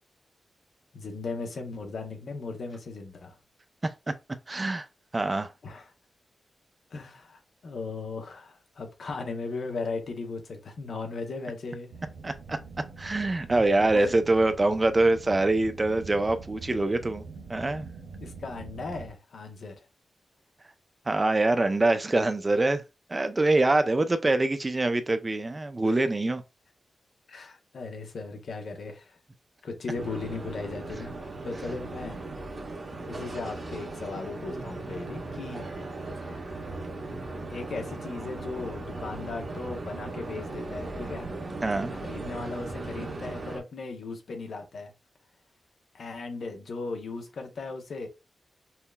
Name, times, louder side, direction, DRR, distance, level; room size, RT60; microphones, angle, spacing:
voice 1, 0.9-3.4 5.6-5.9 6.9-11.9 13.9-14.2 18.2-19.8 27.3-29.2 29.6-31.1 31.4-32.2 33.1-35.7 36.2-36.5 37.5-41.3 41.9-44.9 45.9-48.1, left 3 dB, 75° left, 0.8 m, -37 dB
voice 2, 4.5-4.9 5.1-5.5 12.2-12.6 13.0-17.2 17.5-17.9 21.1-22.8 23.1-26.4 41.6-41.9, right 2 dB, 35° right, 0.5 m, -24 dB
sound 1, 11.9-19.1, right 4 dB, 90° right, 0.5 m, -44 dB
sound 2, 29.9-43.6, right 2 dB, 55° right, 1.2 m, -37 dB
5.6 x 2.1 x 2.3 m
supercardioid pair, 40°, 0 cm